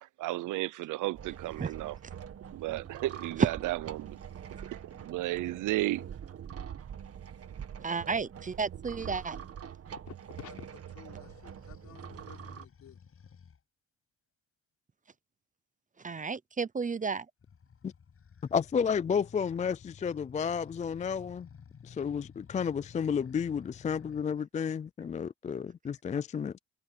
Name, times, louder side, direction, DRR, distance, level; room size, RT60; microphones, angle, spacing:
voice 1, 0.2-2.0 2.5-4.2 4.6-6.0, right 17 dB, 85° right, 0.7 m, -33 dB
sound 1, 1.1-12.7, right 8 dB, 50° right, 2.0 m, -44 dB
voice 2, 7.8-9.4 16.0-17.3, right 5 dB, 25° right, 0.7 m, -33 dB
sound 2, 9.1-9.4 11.2-13.6 17.4-24.2, left 6 dB, 45° left, 7.1 m, -53 dB
voice 3, 10.1-13.0, left 11 dB, 70° left, 3.9 m, -51 dB
voice 4, 18.5-21.5 21.8-26.6, left 7 dB, 25° left, 0.4 m, -31 dB
cardioid pair, 90°, 30 cm